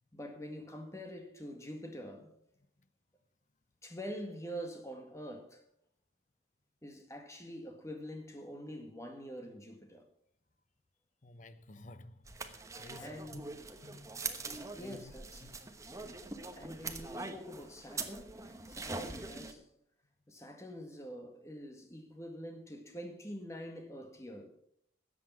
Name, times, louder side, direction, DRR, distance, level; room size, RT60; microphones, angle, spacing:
voice 1, 0.1-2.4 3.8-5.6 6.8-10.1 13.0-13.7 14.8-15.4 16.5-19.7 20.3-24.5, equal, 15° left, 1.9 m, -45 dB
voice 2, 11.2-13.5 13.8-15.6, left 2 dB, 40° left, 0.8 m, -53 dB
sound 1, 12.3-19.5, right 3 dB, 15° right, 1.0 m, -43 dB
13.5 x 8.4 x 6.3 m
head